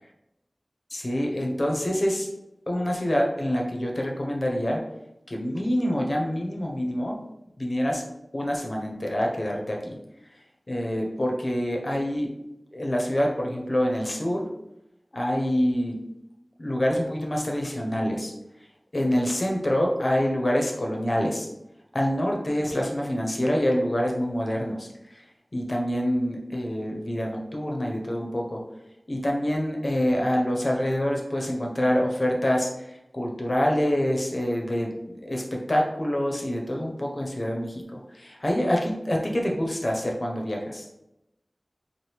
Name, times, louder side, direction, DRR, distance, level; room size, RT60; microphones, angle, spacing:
voice 1, 0.9-2.3 2.7-4.8 5.3-7.2 7.6-8.0 8.3-10.0 10.7-12.3 12.7-14.5 15.1-16.0 16.6-18.3 18.9-21.5 21.9-25.2 25.5-28.6 29.1-40.9, equal, 50° left, 0 dB, 0.9 m, -26 dB
4.6 x 2.4 x 3.4 m, 0.88 s
wide cardioid pair, 50°, 0 cm